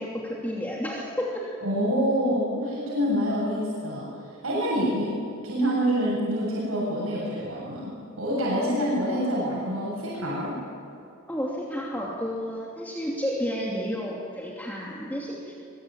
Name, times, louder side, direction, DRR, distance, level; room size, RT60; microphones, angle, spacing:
voice 1, 0.0-1.5 11.3-15.5, equal, 10° left, -4 dB, 2.8 m, -31 dB
voice 2, 1.6-4.1 4.4-5.1 5.4-10.6, equal, 80° right, -5 dB, 7.5 m, -26 dB
23.5 x 23.0 x 9.1 m, 2.6 s
head